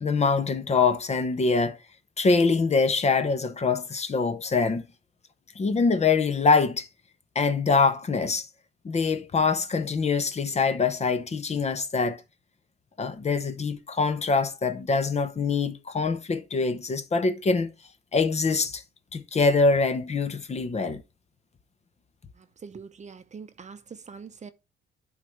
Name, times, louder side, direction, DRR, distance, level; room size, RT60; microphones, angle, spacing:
voice 1, 0.0-1.8 2.2-4.8 5.6-6.9 7.3-8.5 8.8-12.2 13.0-17.7 18.1-18.8 19.1-21.0, left 4 dB, 35° left, 0.8 m, -24 dB
voice 2, 22.4-24.5, right 5 dB, 35° right, 0.7 m, -43 dB
11.0 x 4.0 x 3.2 m
cardioid pair, 90°, 20 cm